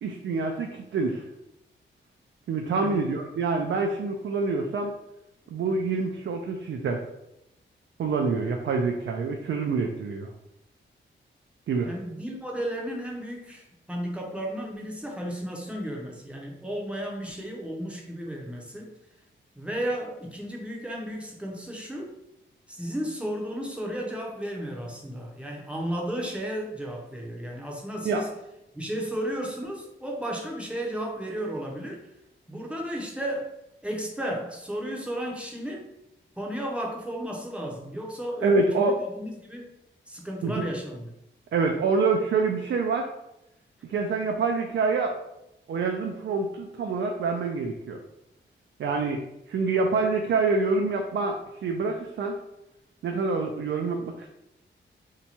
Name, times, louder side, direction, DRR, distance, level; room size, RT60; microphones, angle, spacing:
voice 1, 0.0-1.2 2.5-4.9 5.5-7.0 8.0-10.3 11.7-11.9 28.0-28.2 38.4-39.0 40.4-40.7 41.5-43.1 43.8-45.2 45.7-48.0 48.8-49.2 49.5-52.4 53.0-54.3, right 4 dB, 65° right, 2 dB, 0.4 m, -26 dB
voice 2, 2.7-3.1 11.8-19.0 19.6-22.1 22.7-28.3 28.7-32.0 32.5-33.5 33.8-35.9 36.4-39.7 40.1-41.1, equal, 5° right, -1 dB, 0.6 m, -34 dB
2.8 x 2.2 x 4.2 m, 0.87 s
wide cardioid pair, 140°, 20 cm